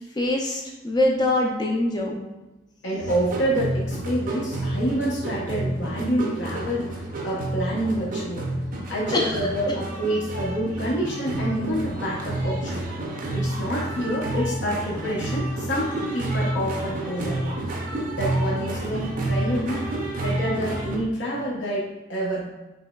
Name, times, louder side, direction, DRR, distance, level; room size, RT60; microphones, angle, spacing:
voice 1, 0.2-2.2 9.1-9.4, left 1 dB, 20° left, -1 dB, 0.3 m, -23 dB
voice 2, 2.8-8.5 8.9-12.8 13.3-17.6 18.1-19.8 20.2-22.5, equal, 70° left, -4 dB, 0.7 m, -27 dB
sound 1, 3.0-21.0, right 1 dB, 45° right, 0.5 m, -29 dB
5.3 x 2.9 x 2.2 m, 1.1 s
head